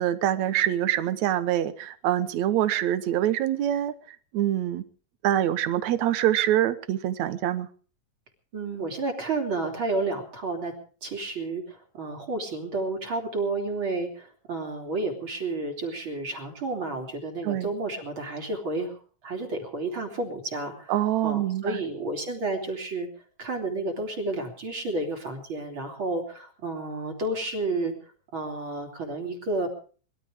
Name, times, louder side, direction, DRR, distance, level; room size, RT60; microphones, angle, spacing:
voice 1, 0.0-4.8 5.2-7.7 17.4-17.7 20.9-21.8, right 12 dB, 75° right, 12 dB, 2.3 m, -25 dB
voice 2, 8.5-10.7 11.0-19.0 19.2-21.0 21.2-23.1 23.4-27.9 28.3-29.7, right 2 dB, 45° right, 2 dB, 3.7 m, -31 dB
22.0 x 12.5 x 5.0 m, 0.41 s
omnidirectional pair, 3.3 m